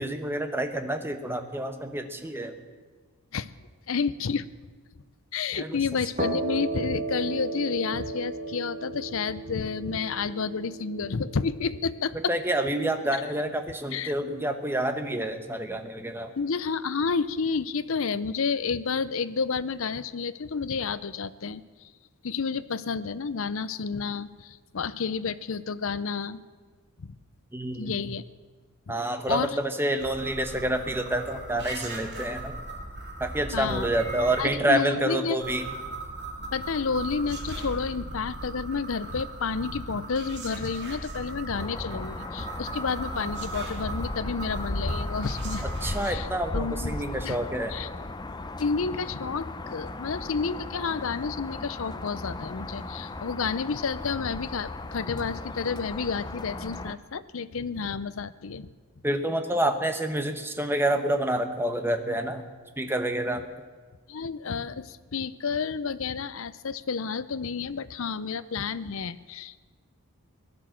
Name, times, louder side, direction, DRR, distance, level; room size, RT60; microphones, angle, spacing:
voice 1, 0.0-2.5 5.5-5.8 12.3-16.3 27.5-28.0 28.9-32.5 33.2-35.7 45.6-47.8 59.0-62.4 62.8-63.5, right 1 dB, 10° right, 7 dB, 1.0 m, -28 dB
voice 2, 3.9-4.5 5.3-12.4 13.9-14.1 16.4-21.6 22.2-26.4 27.0-27.1 27.8-28.2 28.9-29.0 29.3-29.6 33.5-33.9 34.4-35.4 36.5-45.6 46.0-46.3 46.5-47.0 47.2-47.4 47.7-47.9 48.6-58.7 64.1-69.6, left 5 dB, 65° left, 15 dB, 0.6 m, -30 dB
sound 1, 6.2-13.6, right 3 dB, 35° right, 1.7 m, -35 dB
sound 2, 30.0-34.4 35.4-46.1, right 2 dB, 50° right, 2.7 m, -38 dB
sound 3, 41.5-56.9, left 2 dB, 20° left, 0.5 m, -36 dB
17.0 x 11.5 x 7.5 m, 1.4 s
head